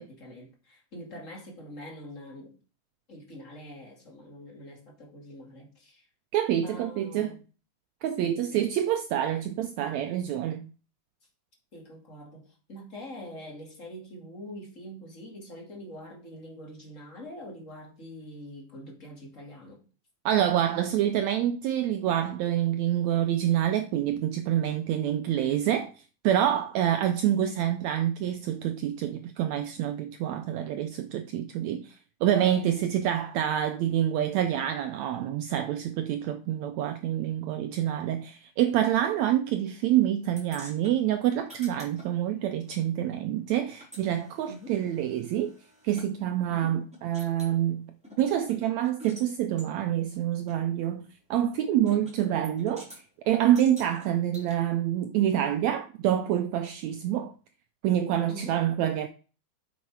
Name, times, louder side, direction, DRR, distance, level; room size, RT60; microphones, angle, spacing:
voice 1, 0.0-2.6 3.1-6.1 6.5-7.4 8.2-8.7 11.7-19.8 32.6-32.9 44.5-44.8 46.5-46.8 51.8-52.1 58.3-58.6, equal, 25° left, 2.2 m, -44 dB
voice 2, 6.3-7.4 8.0-10.6 20.2-25.9 26.2-45.5 45.8-47.9 48.2-51.0 51.3-57.3 57.8-59.1, right 11 dB, 85° right, 1.6 m, -27 dB
sound 1, 40.4-42.8 43.1-46.1 46.5-46.6 46.9-47.6 48.0-49.3 49.6-49.7 50.5-50.6 51.9-52.2 52.4-53.0 53.5-54.5, equal, ahead, 3.3 m, -49 dB
8.3 x 6.4 x 4.7 m
omnidirectional pair, 3.9 m